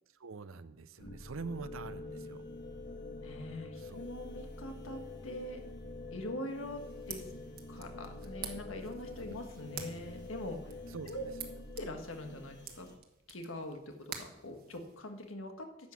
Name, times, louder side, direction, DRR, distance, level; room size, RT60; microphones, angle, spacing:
voice 1, 0.2-2.5 3.8-4.1 10.9-11.3, right 4 dB, 85° right, 14 dB, 0.6 m, -45 dB
sound 1, 1.0-13.0, left 2 dB, 60° left, 1.7 m, -46 dB
voice 2, 3.2-5.6 6.1-6.8 7.1-7.2 7.7-10.6 11.0-11.2 11.8-12.9 13.3-15.7, left 1 dB, 85° left, 4 dB, 1.5 m, -43 dB
sound 2, 6.7-15.3, right 8 dB, 50° right, 1.2 m, -49 dB
10.5 x 7.3 x 5.9 m, 0.91 s
head